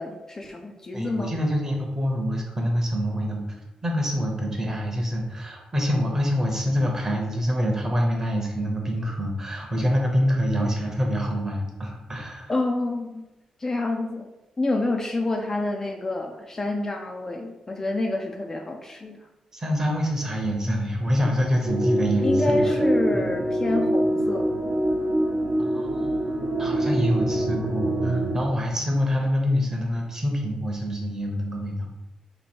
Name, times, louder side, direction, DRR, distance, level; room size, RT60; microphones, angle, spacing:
voice 1, 0.0-1.3 12.5-13.2 13.6-14.3 14.6-19.2 22.2-24.5, left 2 dB, 25° left, 2 dB, 0.3 m, -28 dB
voice 2, 0.9-12.5 19.5-22.6 23.1-23.3 25.6-31.9, equal, 25° right, 1 dB, 0.7 m, -26 dB
sound 1, 21.6-28.4, right 1 dB, 75° right, 0.6 m, -24 dB
2.8 x 2.6 x 4.3 m, 1.0 s
cardioid pair, 120°, 2 cm